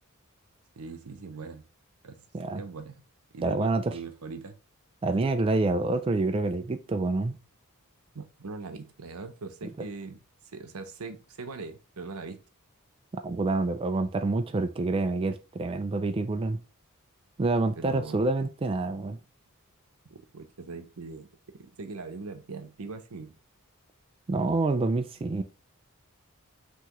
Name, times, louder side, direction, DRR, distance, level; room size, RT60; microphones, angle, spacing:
voice 1, 0.8-1.6 2.0-2.3 2.5-3.0 3.3-4.5 8.1-10.2 10.5-12.4 17.8-18.3 20.1-21.3 21.5-23.4, right 4 dB, 80° right, 0.7 m, -41 dB
voice 2, 3.4-3.9 5.0-7.3 13.2-16.6 17.4-19.2 24.3-25.4, right 3 dB, 25° right, 0.3 m, -27 dB
5.7 x 3.0 x 3.0 m
head